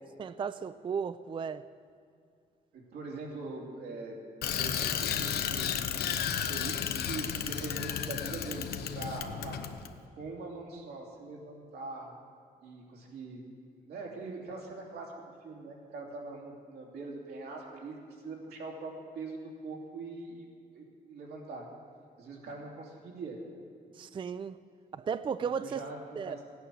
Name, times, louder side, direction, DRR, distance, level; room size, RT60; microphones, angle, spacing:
voice 1, 0.2-1.6 24.0-24.6 24.9-25.8 26.2-26.4, right 6 dB, 30° right, 0.4 m, -35 dB
voice 2, 2.7-4.1 4.6-9.6 10.1-12.1 12.6-13.4 13.8-21.7 22.2-23.4 25.6-26.5, right 3 dB, 90° right, 2.9 m, -42 dB
Bicycle, 4.4-9.9, left 8 dB, 85° left, 0.8 m, -33 dB
16.0 x 9.2 x 6.2 m
cardioid pair, 100°, 16 cm